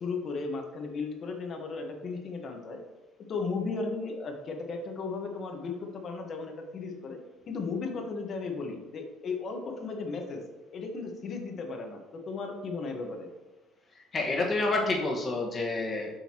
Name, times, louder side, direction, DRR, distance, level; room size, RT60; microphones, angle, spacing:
voice 1, 0.0-2.8 3.3-7.2 7.5-10.4 10.7-13.3, left 4 dB, 45° left, 3 dB, 1.2 m, -35 dB
voice 2, 13.9-16.1, left 2 dB, 30° left, -1 dB, 1.6 m, -29 dB
7.3 x 5.6 x 3.0 m, 1.1 s
cardioid pair, 105°, 0 cm